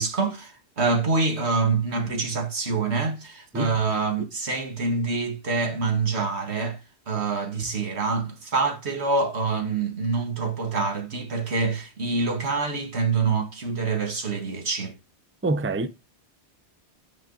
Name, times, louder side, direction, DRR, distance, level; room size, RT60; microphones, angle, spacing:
voice 1, 0.0-6.8 7.1-15.0, right 4 dB, 70° right, 2.0 m, -26 dB
voice 2, 15.4-15.9, right 2 dB, 15° right, 0.5 m, -25 dB
9.8 x 5.0 x 3.9 m
omnidirectional pair, 1.2 m